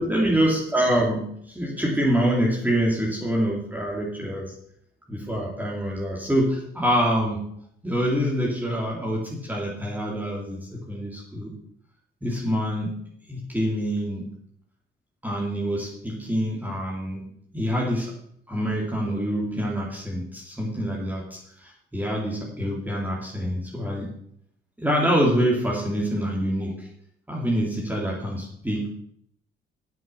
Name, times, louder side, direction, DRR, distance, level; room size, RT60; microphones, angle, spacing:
voice 1, 0.0-4.5 5.1-7.4 7.8-11.5 12.2-12.9 13.3-14.3 15.2-17.2 17.5-18.1 18.5-24.1 24.8-26.9 27.3-28.9, equal, 10° right, -4 dB, 3.1 m, -26 dB
9.2 x 7.3 x 7.0 m, 0.69 s
cardioid pair, 90°, 20 cm